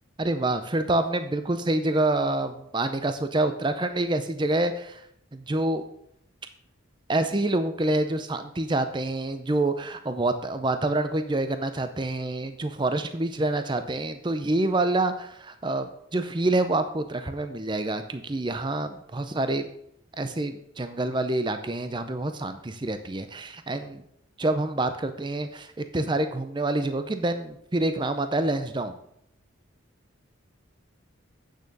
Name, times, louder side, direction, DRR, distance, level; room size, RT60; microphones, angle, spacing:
voice 1, 0.2-5.0 5.3-5.8 7.1-19.7 20.2-24.0 24.4-29.0, right 2 dB, 20° right, 9 dB, 0.5 m, -27 dB
8.6 x 6.6 x 5.3 m, 0.71 s
head